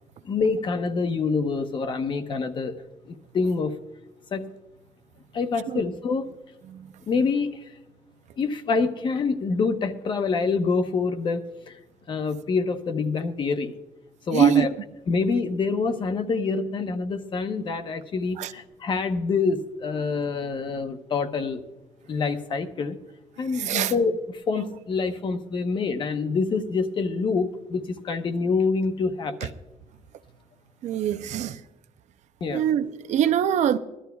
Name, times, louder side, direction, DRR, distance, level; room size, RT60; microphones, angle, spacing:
voice 1, 0.2-2.7 3.1-3.7 4.3-4.5 5.3-6.3 7.1-7.6 8.4-11.8 12.1-13.7 14.3-14.7 15.1-21.6 22.1-23.0 23.4-24.2 24.5-29.5 32.4-32.6, left 4 dB, 40° left, 0.9 m, -26 dB
voice 2, 14.3-14.7 18.4-18.5 23.6-23.9 30.8-31.6 32.5-33.8, right 9 dB, 75° right, 0.6 m, -23 dB
20.5 x 12.5 x 2.3 m
cardioid pair, 170°, 12 cm